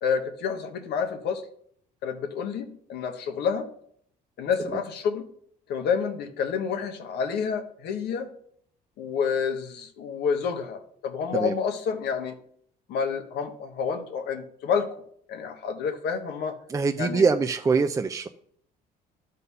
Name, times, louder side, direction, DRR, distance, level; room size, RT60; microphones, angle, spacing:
voice 1, 0.0-1.4 2.0-3.7 4.4-5.2 5.7-8.3 9.0-12.4 12.9-14.9 15.3-16.6 17.0-17.3, left 6 dB, 75° left, 6 dB, 1.2 m, -29 dB
voice 2, 16.7-18.3, right 4 dB, 20° right, 7 dB, 0.5 m, -23 dB
11.0 x 4.1 x 5.5 m, 0.65 s
cardioid pair, 110°, 17 cm